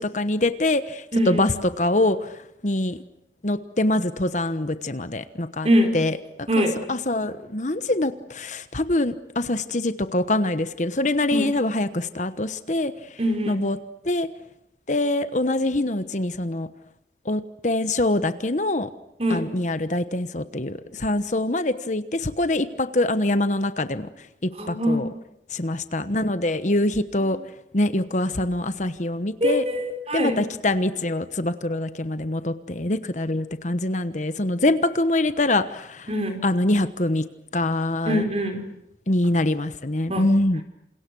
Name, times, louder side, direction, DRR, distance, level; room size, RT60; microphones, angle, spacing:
voice 1, 0.0-2.3 2.6-3.0 3.4-5.7 5.9-6.2 6.6-13.2 13.5-13.8 14.0-14.3 14.9-16.7 17.2-18.9 19.3-24.1 24.4-25.1 25.5-27.4 27.7-29.6 30.1-36.1 36.4-37.3 37.5-38.2 39.1-40.6, left 1 dB, 40° left, 11 dB, 1.1 m, -24 dB
voice 2, 1.1-1.5 5.6-5.9 6.5-6.7 11.3-11.5 13.2-13.6 19.2-19.4 24.6-25.0 29.4-30.4 36.1-36.4 38.1-38.6 40.1-40.2, equal, 35° right, 5 dB, 4.9 m, -23 dB
29.0 x 27.5 x 6.3 m, 0.81 s
head